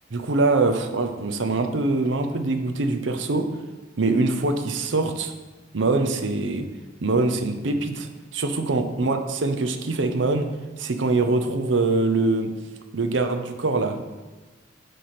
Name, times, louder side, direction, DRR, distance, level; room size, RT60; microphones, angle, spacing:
voice 1, 0.1-3.5 4.0-5.3 5.7-6.7 7.0-10.5 10.8-12.5 12.9-14.0, right 3 dB, 70° right, 7 dB, 0.7 m, -23 dB
9.7 x 3.4 x 5.9 m, 1.2 s
head